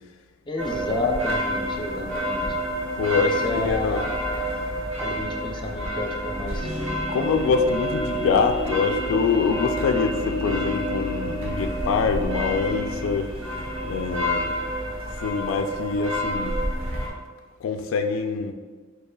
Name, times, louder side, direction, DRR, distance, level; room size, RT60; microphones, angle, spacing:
voice 1, 0.5-2.4 3.2-4.1 4.4-4.6 5.0-7.0, left 2 dB, 25° left, 2 dB, 0.5 m, -30 dB
sound 1, 0.6-17.1, equal, 75° right, 1.2 m, -29 dB
voice 2, 3.0-4.1 5.0-5.2 7.1-13.3 13.9-14.6 15.2-16.6 17.6-18.5, left 5 dB, 75° left, 6 dB, 0.3 m, -25 dB
sound 2, 3.4-15.2, left 1 dB, 5° right, 0.9 m, -38 dB
sound 3, 6.6-14.1, left 3 dB, 30° right, 0.6 m, -34 dB
5.4 x 3.8 x 2.2 m, 1.5 s
head